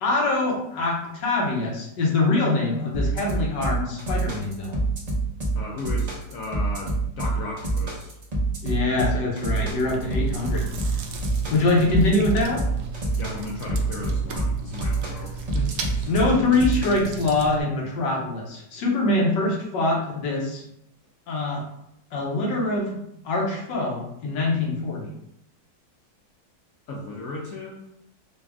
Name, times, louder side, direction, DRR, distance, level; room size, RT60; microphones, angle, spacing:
voice 1, 0.0-4.8 8.6-10.7 10.9-11.0 11.5-12.6 16.1-20.6 21.3-21.6 22.1-23.0 23.2-25.1, left 2 dB, 85° left, -2 dB, 1.6 m, -24 dB
sound 1, 2.9-17.2, right 2 dB, 50° right, 0.5 m, -26 dB
voice 2, 5.5-8.1 13.2-16.1 26.9-27.8, left 2 dB, 65° left, -2 dB, 0.8 m, -36 dB
Chewing mastication, 9.5-17.6, right 4 dB, 75° right, 1.1 m, -35 dB
4.0 x 2.3 x 3.4 m, 0.77 s
omnidirectional pair, 1.9 m